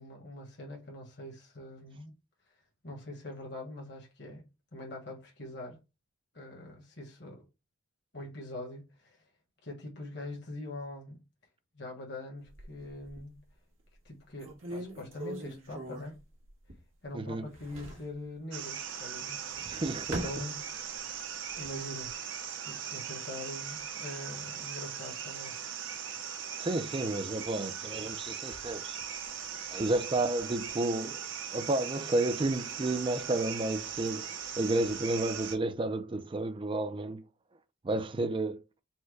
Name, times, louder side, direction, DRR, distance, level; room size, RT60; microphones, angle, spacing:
voice 1, 0.0-2.1 2.8-5.8 6.3-7.4 8.1-9.2 9.6-11.2 11.7-13.4 14.0-16.2 17.0-19.8 20.2-20.6 21.5-22.1 22.6-25.6 33.3-33.4, left 1 dB, 60° left, 1.3 m, -43 dB
sound 1, 12.5-13.4 13.9-14.0 14.4-17.0 17.3-18.2 19.3-21.1 21.5-22.1, right 1 dB, 90° right, 1.4 m, -42 dB
voice 2, 17.1-17.5 19.7-20.3 26.6-29.0 29.7-31.2 31.5-37.2 37.8-38.6, right 2 dB, 25° right, 0.4 m, -31 dB
sound 2, 18.5-35.6, right 8 dB, 70° right, 0.7 m, -39 dB
4.4 x 2.1 x 4.6 m
head